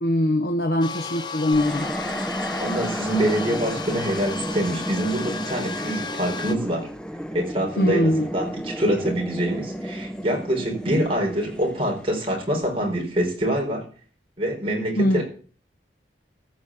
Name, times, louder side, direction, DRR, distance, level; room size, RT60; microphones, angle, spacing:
voice 1, 0.0-1.9 7.8-8.3 15.0-15.2, left 1 dB, 60° left, 7 dB, 0.9 m, -22 dB
sound 1, 0.8-6.5, left 4 dB, 25° left, 1.0 m, -34 dB
sound 2, 1.5-12.9, equal, 5° left, 0.7 m, -33 dB
voice 2, 2.6-6.9 7.3-13.8 14.4-15.2, right 1 dB, 30° right, 0 dB, 4.6 m, -25 dB
14.5 x 5.1 x 8.4 m, 0.41 s
head